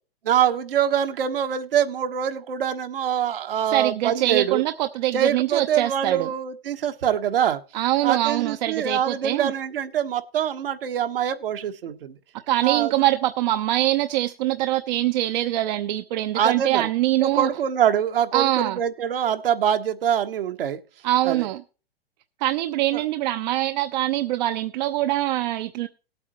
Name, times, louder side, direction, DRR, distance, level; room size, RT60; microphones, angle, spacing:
voice 1, 0.2-4.6 5.1-7.6 8.0-12.1 12.6-12.9 16.4-16.8 17.2-20.8 21.3-21.4 22.9-23.0, right 9 dB, 65° right, 1.5 m, -24 dB
voice 2, 3.7-6.3 7.7-9.5 12.5-17.5 18.3-18.8 21.0-21.6 22.4-25.9, right 15 dB, 45° right, 0.8 m, -23 dB
18.5 x 8.6 x 3.1 m
hypercardioid pair, 120°, 30 cm